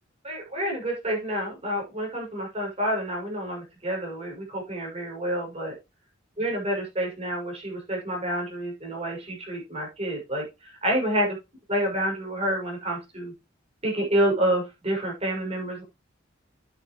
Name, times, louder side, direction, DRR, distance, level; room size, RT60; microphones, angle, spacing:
voice 1, 0.2-5.7 6.4-11.4 11.7-13.3 13.8-15.8, right 1 dB, 35° right, -1 dB, 6.7 m, -28 dB
11.0 x 8.9 x 3.1 m, 0.25 s
head